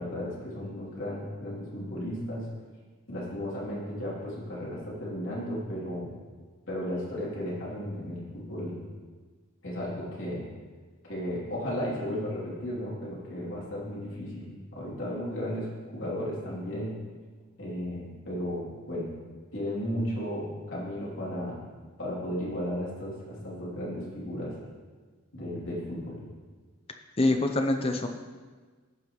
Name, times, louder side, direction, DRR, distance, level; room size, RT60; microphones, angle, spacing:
voice 1, 0.0-2.4 3.1-6.1 6.7-8.8 9.6-10.4 11.1-16.9 17.6-19.1 19.5-21.6 22.0-24.6 25.3-26.2, equal, 60° left, -7 dB, 3.0 m, -34 dB
voice 2, 27.2-28.1, left 2 dB, 25° left, 4 dB, 0.6 m, -25 dB
15.0 x 5.5 x 3.1 m, 1.4 s
head